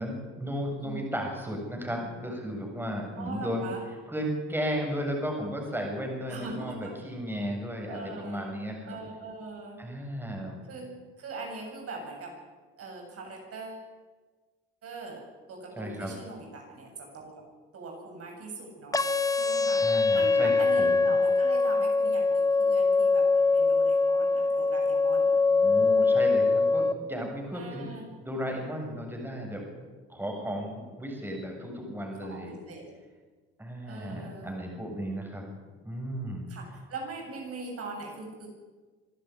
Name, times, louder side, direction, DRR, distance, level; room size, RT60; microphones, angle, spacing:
voice 1, 0.0-3.7 4.1-9.0 9.8-10.6 15.8-16.1 19.8-20.5 20.8-21.0 25.5-29.6 30.1-32.5 33.6-35.4 35.9-36.5, equal, 5° right, 1 dB, 7.2 m, -34 dB
voice 2, 3.2-3.8 6.3-6.9 7.9-8.5 8.8-9.8 10.7-10.9 11.2-12.3 12.8-13.8 14.8-15.2 15.5-17.3 17.7-19.0 19.3-19.8 20.1-25.4 27.5-28.1 32.2-32.9 33.9-34.5 36.5-38.5, right 3 dB, 50° right, 1 dB, 7.6 m, -41 dB
sound 1, 18.9-26.9, left 3 dB, 10° left, 1.0 m, -23 dB
25.0 x 12.0 x 9.7 m, 1.4 s
supercardioid pair, 75°, 30 cm